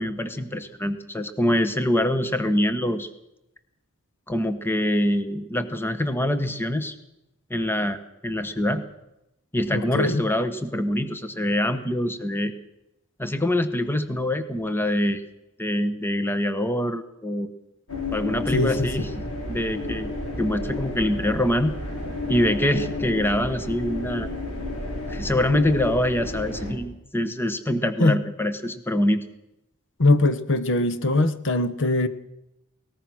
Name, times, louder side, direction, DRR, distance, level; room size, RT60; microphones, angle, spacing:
voice 1, 0.0-3.1 4.3-6.9 7.5-8.8 9.5-12.5 13.2-15.2 15.6-17.5 18.1-19.1 19.5-20.1 20.4-21.8 22.3-24.3 25.1-29.2, left 1 dB, 10° left, 10 dB, 1.1 m, -24 dB
voice 2, 9.7-10.2 18.5-18.9 28.0-28.2 30.0-32.1, left 2 dB, 60° left, 12 dB, 1.1 m, -21 dB
sound 1, 17.9-26.7, left 2 dB, 80° left, 5.9 m, -31 dB
22.0 x 19.5 x 6.2 m, 0.88 s
head